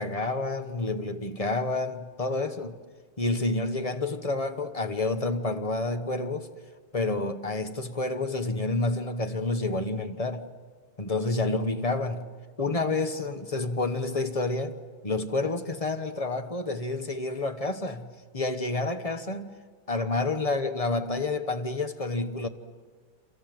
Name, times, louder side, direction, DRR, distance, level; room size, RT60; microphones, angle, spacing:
voice 1, 0.0-2.7 3.2-6.5 6.9-10.5 11.0-12.3 12.6-14.8 15.0-19.5 19.9-22.5, left 2 dB, 30° left, 0.7 m, -29 dB
28.0 x 27.0 x 7.7 m
omnidirectional pair, 2.3 m